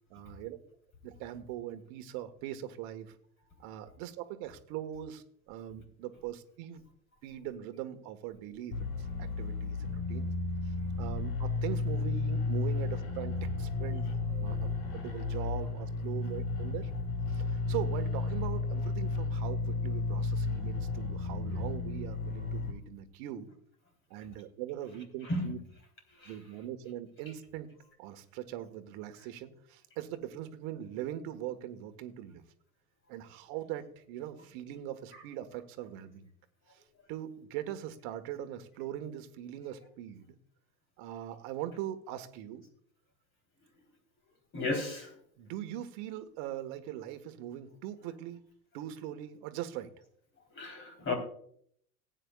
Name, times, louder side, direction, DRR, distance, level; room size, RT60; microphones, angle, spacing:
voice 1, 0.1-0.6 1.0-3.1 3.6-6.8 7.2-10.3 10.6-14.7 14.9-16.9 17.3-23.5 24.1-25.6 26.2-27.7 28.0-32.4 33.1-36.3 36.7-36.8 37.1-40.3 41.0-42.6 45.4-48.4 48.7-49.9, right 12 dB, 45° right, 9 dB, 1.5 m, -41 dB
sound 1, 8.7-22.7, left 3 dB, 50° left, 3.4 m, -33 dB
voice 2, 44.5-45.1 50.6-51.1, left 2 dB, 25° left, 3 dB, 3.4 m, -33 dB
19.0 x 9.0 x 2.3 m, 0.66 s
hypercardioid pair, 100°, 44 cm